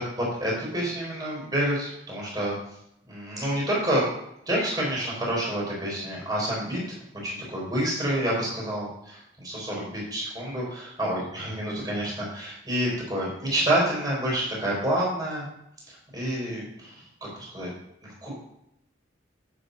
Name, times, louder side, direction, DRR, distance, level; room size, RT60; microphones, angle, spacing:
voice 1, 0.0-2.6 3.1-4.0 4.5-6.8 7.2-15.5 15.9-17.0 17.4-17.7 18.2-18.3, right 1 dB, 20° right, -5 dB, 4.3 m, -28 dB
9.5 x 7.7 x 4.0 m, 0.78 s
head